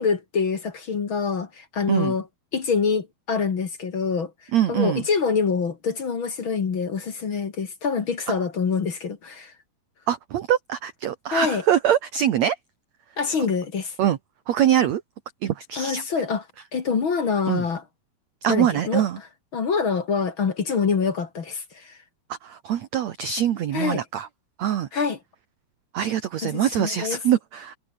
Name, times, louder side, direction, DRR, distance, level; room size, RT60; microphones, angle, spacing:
voice 1, 0.0-2.3 2.5-9.5 11.3-11.7 13.2-14.0 15.8-16.4 16.7-17.8 18.5-19.2 19.5-22.0 23.7-24.0 24.9-25.2 26.4-27.2, left 5 dB, 40° left, 2.1 m, -25 dB
voice 2, 4.5-5.0 10.1-12.6 14.0-14.2 14.5-15.0 15.4-16.0 17.5-17.6 18.4-19.2 22.3-24.3 24.6-24.9 25.9-27.8, right 10 dB, 65° right, 1.8 m, -23 dB
omnidirectional pair, 4.7 m